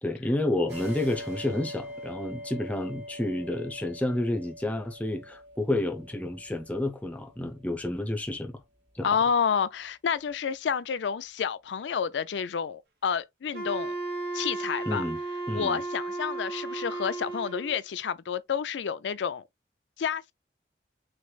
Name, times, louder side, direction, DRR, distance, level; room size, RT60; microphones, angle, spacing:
voice 1, 0.0-8.6 8.9-9.2 14.9-15.2 15.5-15.8, left 1 dB, 10° left, 0.7 m, -30 dB
sound 1, 0.7-7.8, equal, 80° right, 2.5 m, -43 dB
voice 2, 9.0-13.9 14.3-15.0 15.5-19.4 20.0-20.3, left 7 dB, 85° left, 0.4 m, -29 dB
Wind instrument woodwind instrument, 13.5-17.8, right 2 dB, 60° right, 1.0 m, -34 dB
6.1 x 3.2 x 2.3 m
head